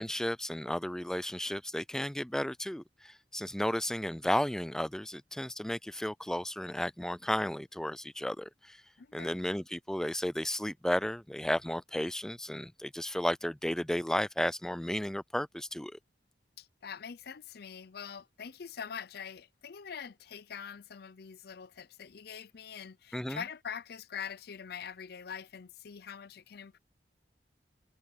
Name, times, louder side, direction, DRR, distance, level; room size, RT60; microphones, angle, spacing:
voice 1, 0.0-8.8 9.1-16.0 23.1-23.4, left 1 dB, 5° left, 0.3 m, -33 dB
voice 2, 9.0-9.3 16.6-26.8, left 7 dB, 60° left, 0.5 m, -44 dB
head